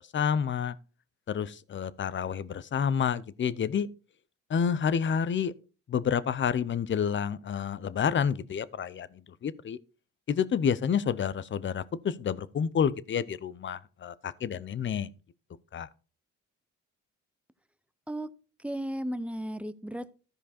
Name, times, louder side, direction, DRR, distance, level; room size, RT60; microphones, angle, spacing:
voice 1, 0.1-0.7 1.3-3.9 4.5-5.5 5.9-9.8 10.3-15.1 15.7-15.9, left 7 dB, 40° left, 0.7 m, -29 dB
voice 2, 18.6-20.1, right 1 dB, 5° right, 0.7 m, -34 dB
13.5 x 5.0 x 4.2 m
cardioid pair, 90°, 30 cm